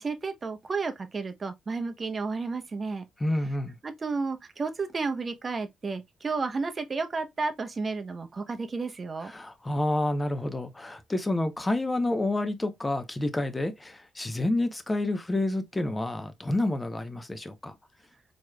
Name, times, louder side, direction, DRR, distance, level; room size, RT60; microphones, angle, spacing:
voice 1, 0.0-3.0 3.8-9.3, right 4 dB, 35° right, 0.8 m, -32 dB
voice 2, 3.2-3.8 9.3-17.7, left 1 dB, 15° left, 0.8 m, -29 dB
4.6 x 3.0 x 2.2 m
cardioid pair, 90°, 0 cm